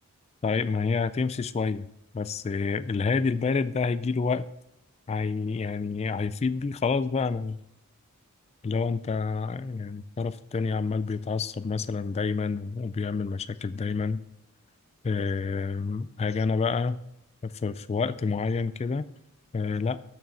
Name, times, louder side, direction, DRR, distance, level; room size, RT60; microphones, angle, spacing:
voice 1, 0.4-1.9 2.1-4.5 5.1-7.6 8.6-14.2 15.0-17.0 17.4-19.1 19.5-20.0, left 4 dB, 30° left, 14 dB, 0.3 m, -28 dB
7.0 x 6.3 x 6.7 m, 0.83 s
head